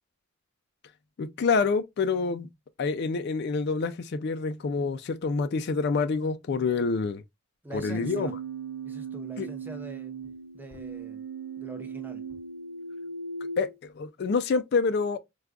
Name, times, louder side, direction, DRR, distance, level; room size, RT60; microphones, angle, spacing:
voice 1, 1.2-2.5 2.8-7.2 7.7-8.3 9.4-9.5 13.6-15.2, left 4 dB, 50° left, 0.3 m, -27 dB
voice 2, 7.6-8.3 8.8-10.1 10.5-11.2 11.6-12.2, right 1 dB, 10° right, 0.5 m, -43 dB
Keyboard (musical), 7.7-13.7, right 5 dB, 70° right, 0.9 m, -38 dB
4.7 x 2.2 x 2.3 m
head